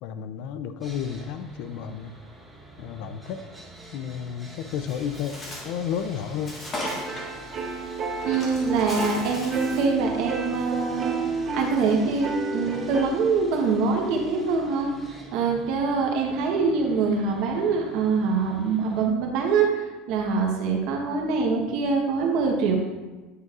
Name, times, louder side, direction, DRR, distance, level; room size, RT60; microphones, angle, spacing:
voice 1, 0.0-2.1 2.8-3.5 3.9-5.3 5.6-6.6, left 8 dB, 55° left, 10 dB, 0.3 m, -32 dB
Sawing, 0.8-19.1, right 1 dB, 5° right, 1.0 m, -46 dB
Bird, 4.9-10.0, left 1 dB, 20° left, 1.4 m, -38 dB
sound 1, 6.8-13.1, right 3 dB, 30° right, 0.8 m, -31 dB
voice 2, 8.2-11.2 11.5-14.9 15.3-22.8, right 4 dB, 55° right, 1 dB, 0.9 m, -24 dB
9.4 x 6.0 x 2.4 m, 1.2 s
cardioid pair, 170°, 0 cm